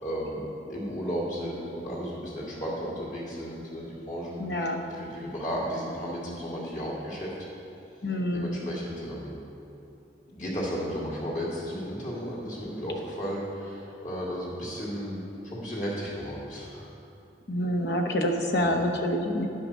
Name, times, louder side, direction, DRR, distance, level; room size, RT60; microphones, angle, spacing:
voice 1, 0.0-7.3 8.3-9.4 10.3-16.9 18.6-18.8, equal, 45° left, -5 dB, 2.3 m, -34 dB
voice 2, 4.4-4.8 8.0-8.6 17.5-19.5, left 1 dB, 70° left, 3 dB, 0.9 m, -27 dB
10.0 x 5.8 x 6.1 m, 2.8 s
head